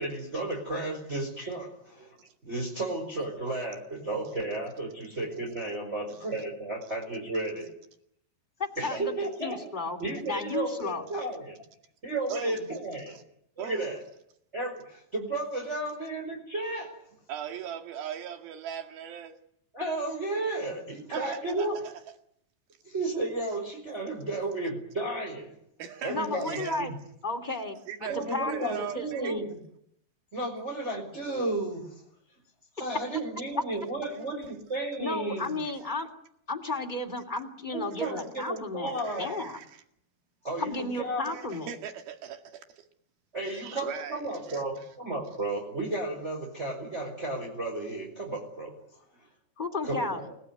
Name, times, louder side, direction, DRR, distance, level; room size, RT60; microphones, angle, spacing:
voice 1, 0.0-2.2 2.4-7.7 8.8-9.7 10.0-11.6 12.0-13.2 13.6-14.0 14.5-16.9 19.7-21.8 22.8-25.5 26.0-27.0 28.1-29.6 30.3-32.0 32.8-35.6 37.7-39.3 40.4-41.3 43.3-48.7 49.8-50.3, right 2 dB, 15° right, 5.1 m, -33 dB
voice 2, 8.6-9.1 9.4-10.0 10.3-11.1 26.1-26.9 27.2-29.4 32.9-33.0 35.0-36.1 36.5-39.6 40.6-41.7 49.6-50.3, left 2 dB, 15° left, 2.3 m, -33 dB
voice 3, 12.3-12.6 13.1-13.2 13.6-13.9 17.3-19.4 21.1-21.9 25.8-26.8 27.9-29.3 35.6-35.9 38.0-38.1 38.9-39.8 41.3-42.8 43.5-44.9, right 8 dB, 65° right, 3.8 m, -40 dB
29.5 x 19.0 x 9.6 m
omnidirectional pair, 4.9 m